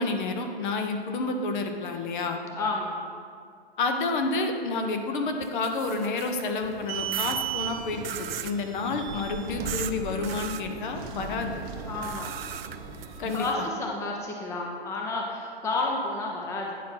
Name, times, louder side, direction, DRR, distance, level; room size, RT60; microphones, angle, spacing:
voice 1, 0.0-2.4 3.8-11.5 13.2-13.7, left 3 dB, 50° left, 5 dB, 0.9 m, -29 dB
voice 2, 2.5-3.0 8.6-8.7 11.9-12.3 13.3-16.8, left 2 dB, 10° left, -1 dB, 0.6 m, -31 dB
sound 1, 5.4-6.5 7.1-7.4 8.0-8.6 9.7-9.9 10.2-10.6 12.0-13.5, right 11 dB, 65° right, 0.5 m, -37 dB
sound 2, 6.6-13.5, right 7 dB, 30° right, 0.7 m, -37 dB
9.3 x 4.4 x 5.7 m, 2.2 s
hypercardioid pair, 120°, 31 cm